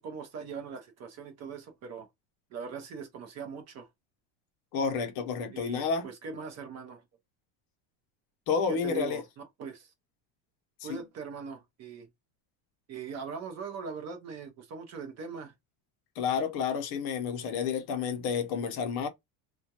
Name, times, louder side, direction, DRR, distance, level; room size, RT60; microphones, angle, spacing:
voice 1, 0.0-2.1 2.5-3.9 5.5-7.0 8.7-9.2 9.6-9.9 10.8-12.1 12.9-15.5, right 5 dB, 35° right, 0.6 m, -41 dB
voice 2, 4.7-6.1 8.5-9.2 10.8-11.0 16.2-19.1, left 6 dB, 55° left, 0.7 m, -30 dB
2.3 x 2.1 x 2.7 m
cardioid pair, 175°, 46 cm